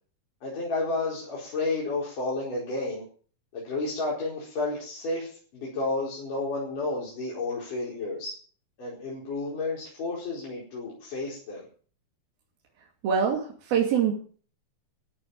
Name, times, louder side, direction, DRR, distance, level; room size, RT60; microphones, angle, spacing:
voice 1, 0.4-3.0 3.5-8.3 8.8-11.6, left 2 dB, 60° left, -6 dB, 6.4 m, -31 dB
voice 2, 13.0-14.1, right 7 dB, 75° right, 0 dB, 4.4 m, -24 dB
15.0 x 9.1 x 9.6 m, 0.44 s
omnidirectional pair, 4.3 m